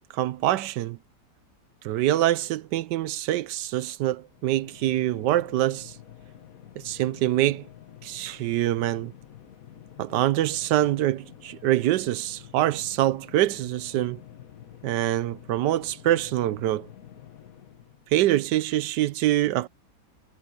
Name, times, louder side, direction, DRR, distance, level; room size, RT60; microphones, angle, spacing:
voice 1, 0.1-1.0 1.8-5.9 6.8-7.7 8.0-9.1 10.0-14.2 14.8-16.9 18.1-19.7, right 14 dB, 80° right, 1.3 m, -25 dB
sound 1, 4.3-18.1, left 10 dB, 55° left, 1.6 m, -48 dB
omnidirectional pair, 1.8 m